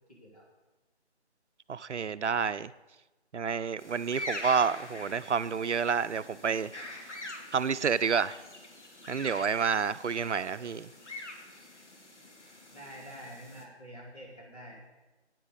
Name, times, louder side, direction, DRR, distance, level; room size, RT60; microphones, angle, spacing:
voice 1, 0.1-0.4 10.6-10.7 12.7-14.8, equal, 35° left, -6 dB, 4.7 m, -47 dB
voice 2, 1.7-2.7 3.3-6.7 7.5-8.4 9.1-10.9, right 6 dB, 85° right, 14 dB, 0.6 m, -29 dB
sound 1, 3.8-13.6, left 1 dB, 85° left, 2.5 m, -44 dB
10.5 x 9.2 x 7.1 m, 1.1 s
figure-of-eight pair, 175°, 34 cm